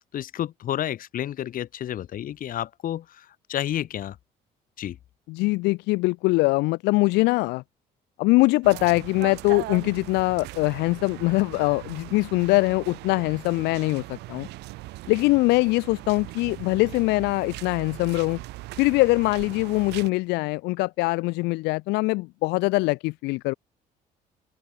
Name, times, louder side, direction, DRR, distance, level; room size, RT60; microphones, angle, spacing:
voice 1, 0.0-4.2 4.8-5.0, left 11 dB, 55° left, 1.3 m, -31 dB
voice 2, 5.3-7.6 8.2-14.5 15.1-18.4 18.8-23.5, left 23 dB, 90° left, 0.4 m, -23 dB
sound 1, 8.6-20.1, right 20 dB, 90° right, 2.6 m, -40 dB
cardioid pair, 110°, 17 cm